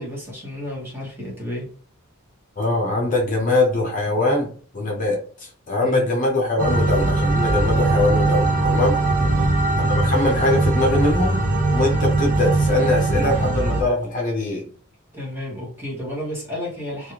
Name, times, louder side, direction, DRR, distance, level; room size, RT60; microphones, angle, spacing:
voice 1, 0.0-1.7 5.8-6.1 9.2-9.5 15.1-17.1, left 1 dB, 10° right, -5 dB, 1.1 m, -31 dB
voice 2, 2.6-4.5 4.7-9.0 9.8-11.4 11.7-14.6, left 2 dB, 40° left, -1 dB, 0.8 m, -22 dB
sound 1, 6.6-13.8, right 2 dB, 40° right, 0.7 m, -20 dB
3.2 x 2.4 x 2.9 m, 0.43 s
head